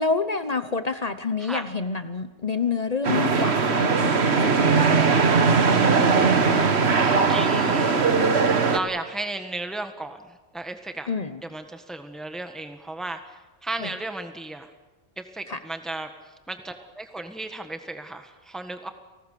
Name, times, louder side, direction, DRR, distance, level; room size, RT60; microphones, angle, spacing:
voice 1, 0.0-5.4 11.1-11.4 13.8-14.0 15.5-15.6, left 4 dB, 40° left, 11 dB, 0.9 m, -28 dB
sound 1, 3.0-8.8, right 5 dB, 75° right, 1.7 m, -20 dB
voice 2, 7.1-8.3 8.7-11.1 11.4-14.7 15.2-16.1 16.5-18.9, right 2 dB, ahead, 7 dB, 1.5 m, -35 dB
29.5 x 19.0 x 6.8 m, 1.1 s
omnidirectional pair, 1.1 m